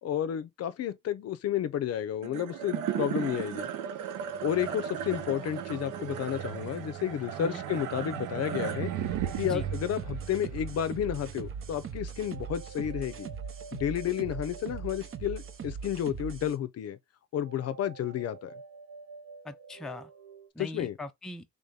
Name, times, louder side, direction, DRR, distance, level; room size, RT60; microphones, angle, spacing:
voice 1, 0.0-3.7 4.4-8.9 9.4-13.3 13.7-17.0 17.3-18.5 20.6-21.0, left 10 dB, 55° left, 0.5 m, -31 dB
sound 1, 2.2-12.7, right 10 dB, 85° right, 0.6 m, -36 dB
sound 2, 8.1-10.8 12.1-16.1 17.4-20.5, right 4 dB, 70° right, 1.0 m, -50 dB
sound 3, 9.0-16.6, right 6 dB, 45° right, 0.7 m, -40 dB
voice 2, 19.4-20.1 20.6-21.4, left 2 dB, ahead, 0.4 m, -40 dB
3.5 x 2.7 x 3.4 m
cardioid pair, 90°, 30 cm